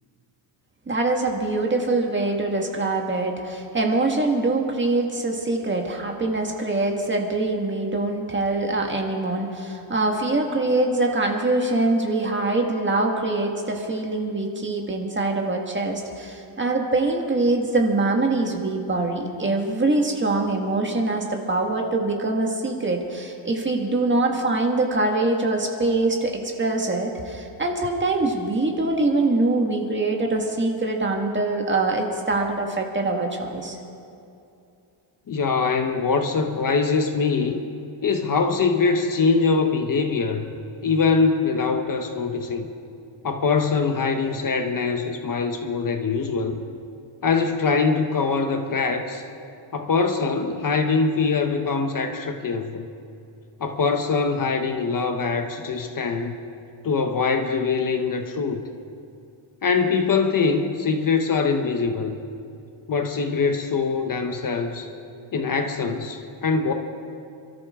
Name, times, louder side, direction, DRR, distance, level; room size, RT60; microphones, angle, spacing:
voice 1, 0.9-33.8, right 2 dB, 25° right, 1 dB, 1.8 m, -24 dB
voice 2, 35.3-37.6 38.0-40.5 40.8-42.7 43.2-46.6 47.2-49.2 49.7-52.9 53.6-56.3 56.8-58.6 59.6-62.2 62.9-64.9 65.3-66.7, left 4 dB, 40° left, 5 dB, 1.0 m, -23 dB
28.0 x 13.5 x 3.7 m, 2.6 s
wide cardioid pair, 160°, 49 cm